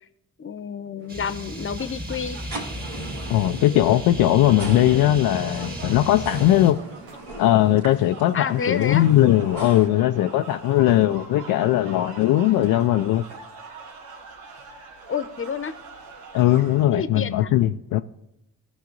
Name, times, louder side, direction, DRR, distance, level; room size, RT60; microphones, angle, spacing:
voice 1, 0.4-2.4 8.3-9.1 15.1-15.7 16.9-17.5, left 6 dB, 35° left, 0.9 m, -29 dB
sound 1, 1.0-9.9, right 2 dB, 70° right, 2.3 m, -39 dB
sound 2, 1.1-6.7, right 1 dB, 25° right, 2.1 m, -35 dB
sound 3, 1.5-16.8, right 4 dB, 90° right, 1.2 m, -44 dB
voice 2, 3.3-6.8 7.4-13.2 16.3-18.0, left 13 dB, 80° left, 0.5 m, -19 dB
17.0 x 6.3 x 3.9 m
hypercardioid pair, 45°, 36 cm